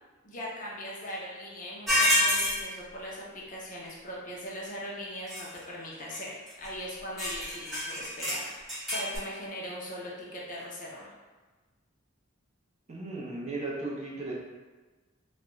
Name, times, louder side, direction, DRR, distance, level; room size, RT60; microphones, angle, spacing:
voice 1, 0.2-8.5 8.9-11.1, equal, 40° left, -4 dB, 0.5 m, -40 dB
sound 1, 1.9-2.6 5.3-5.6 6.1-6.2 6.5-6.7 7.2-9.2, equal, ahead, 1.1 m, -27 dB
voice 2, 12.9-14.3, right 2 dB, 35° right, -4 dB, 0.5 m, -36 dB
2.3 x 2.1 x 3.0 m, 1.3 s
head